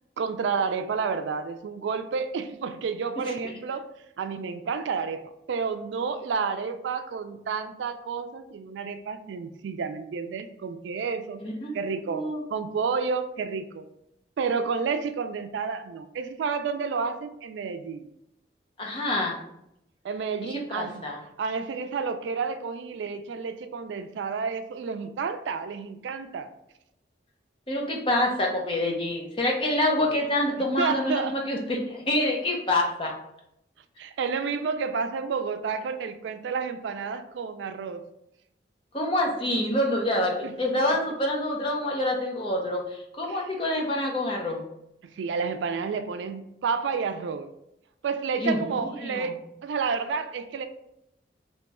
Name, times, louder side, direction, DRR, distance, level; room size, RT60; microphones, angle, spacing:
voice 1, 0.2-3.9 4.2-11.4 11.7-13.8 14.4-18.1 20.0-21.0 21.4-26.5 30.6-31.4 34.0-38.0 40.4-41.0 43.2-43.5 45.2-47.5 48.0-50.7, right 5 dB, 85° right, 9 dB, 0.3 m, -30 dB
voice 2, 11.4-11.8 12.1-12.4 18.8-19.4 20.4-21.2 27.7-33.1 38.9-44.6 48.4-49.3, left 1 dB, 30° left, -1 dB, 0.6 m, -27 dB
2.9 x 2.3 x 4.1 m, 0.80 s
head